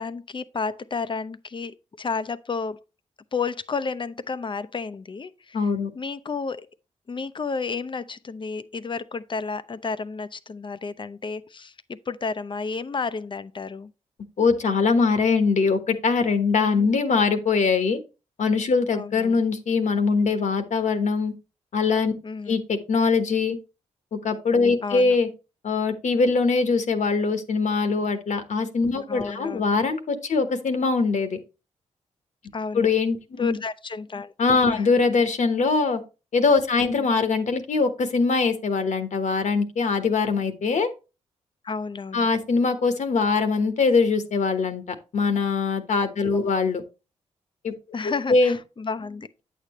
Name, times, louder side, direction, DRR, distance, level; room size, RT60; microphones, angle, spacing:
voice 1, 0.0-2.8 3.3-5.7 5.9-6.7 7.1-13.9 16.6-16.9 18.9-19.4 22.2-22.6 24.8-25.2 29.1-29.7 32.5-32.9 33.4-34.3 34.7-34.9 36.8-37.1 41.6-42.3 47.9-49.3, left 4 dB, 40° left, 0.6 m, -31 dB
voice 2, 5.5-5.9 14.4-18.0 18.4-21.3 21.7-22.1 22.5-23.6 24.1-25.3 25.6-31.4 32.7-33.6 34.4-36.0 36.3-40.9 42.1-46.8 47.6-47.7 48.3-48.6, left 4 dB, 65° left, 1.2 m, -22 dB
8.7 x 6.7 x 3.0 m
cardioid pair, 55°, 13 cm